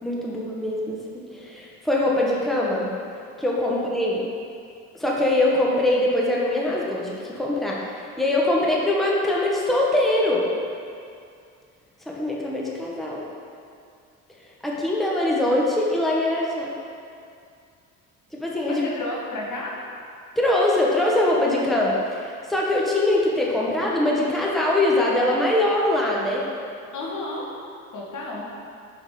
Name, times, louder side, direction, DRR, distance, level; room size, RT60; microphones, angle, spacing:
voice 1, 0.0-2.9 3.4-4.2 4.9-10.5 12.0-13.2 14.6-16.7 18.3-18.8 20.3-26.4, left 1 dB, ahead, -4 dB, 1.5 m, -23 dB
voice 2, 18.7-19.8 26.9-27.5 27.9-28.5, left 2 dB, 45° left, -3 dB, 1.8 m, -32 dB
10.5 x 4.2 x 5.1 m, 2.4 s
figure-of-eight pair, 50°, 40 cm